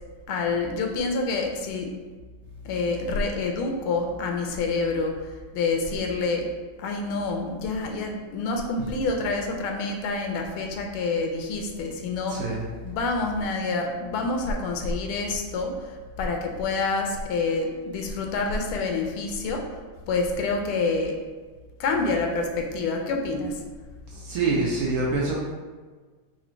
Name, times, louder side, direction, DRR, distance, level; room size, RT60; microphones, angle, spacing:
voice 1, 0.3-1.9 2.6-6.5 6.8-12.4 12.8-19.6 20.1-21.1 21.8-23.6, left 3 dB, 90° left, 3 dB, 1.5 m, -27 dB
voice 2, 12.3-12.7 24.1-25.4, right 3 dB, 85° right, -4 dB, 0.8 m, -25 dB
4.0 x 2.5 x 4.4 m, 1.4 s
omnidirectional pair, 2.3 m